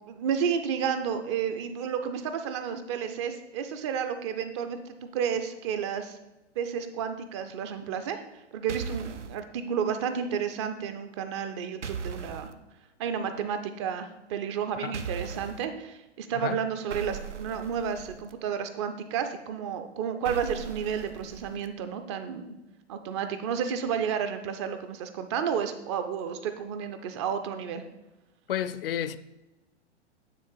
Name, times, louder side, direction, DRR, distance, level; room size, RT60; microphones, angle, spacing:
voice 1, 0.1-6.2 6.6-8.2 8.5-12.5 13.0-22.6 22.9-27.8, right 7 dB, 25° right, 0.4 m, -31 dB
sound 1, 8.7-9.4 11.8-12.5 14.9-15.6 16.9-18.3 20.2-21.7, right 6 dB, 85° right, 0.6 m, -38 dB
voice 2, 28.5-29.2, left 10 dB, 55° left, 0.5 m, -31 dB
9.5 x 3.4 x 4.5 m
figure-of-eight pair, 110°, 35 cm